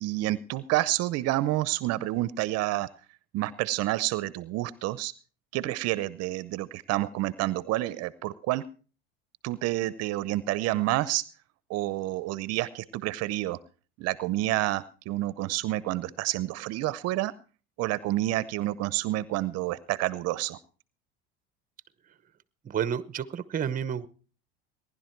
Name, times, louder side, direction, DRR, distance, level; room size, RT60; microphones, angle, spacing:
voice 1, 0.0-2.9 3.3-5.1 5.5-8.6 9.4-11.2 11.7-13.6 14.0-17.3 17.8-20.6, right 16 dB, 60° right, 17 dB, 0.7 m, -29 dB
voice 2, 22.6-24.1, right 8 dB, 30° right, 16 dB, 0.9 m, -30 dB
19.0 x 11.0 x 4.5 m, 0.37 s
supercardioid pair, 105°, 29 cm